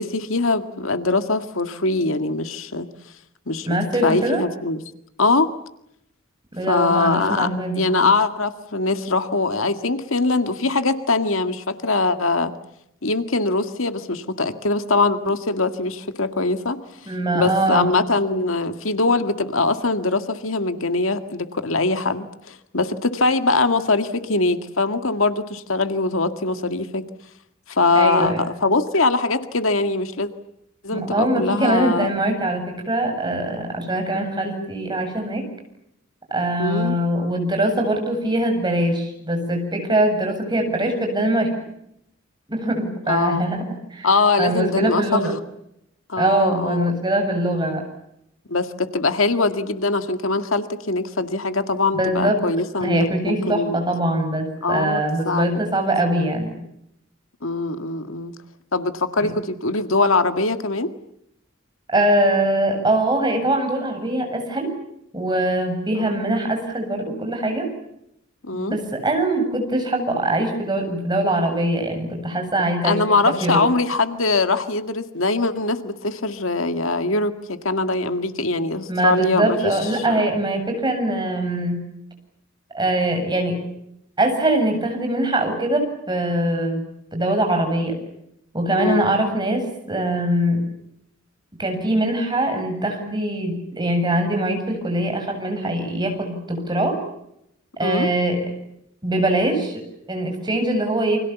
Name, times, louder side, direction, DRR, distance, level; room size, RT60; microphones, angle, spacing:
voice 1, 0.0-2.9 3.5-3.8 4.0-4.8 5.2-5.5 6.7-7.5 7.8-12.5 13.0-16.8 17.3-27.0 27.7-30.3 30.8-32.1 36.6-37.0 43.1-43.4 44.0-45.3 46.1-46.9 48.5-53.8 54.6-55.6 57.4-58.3 58.7-60.9 66.0-66.2 68.5-68.8 72.8-80.2 88.8-89.1 97.8-98.1, left 3 dB, 75° left, 9 dB, 1.9 m, -22 dB
voice 2, 3.7-4.4 6.6-7.8 17.1-17.8 27.9-28.4 30.9-35.4 36.3-41.5 42.5-43.6 43.9-44.1 44.4-45.3 46.2-47.8 52.0-52.4 52.8-56.5 59.2-59.3 61.9-64.7 65.1-67.6 68.5-73.0 73.4-73.6 78.9-81.8 82.7-83.5 84.2-86.8 87.1-88.0 88.5-90.7 91.6-97.0 97.8-98.4 99.0-101.2, right 1 dB, 20° right, 3 dB, 7.7 m, -22 dB
29.5 x 25.5 x 7.2 m, 0.78 s
head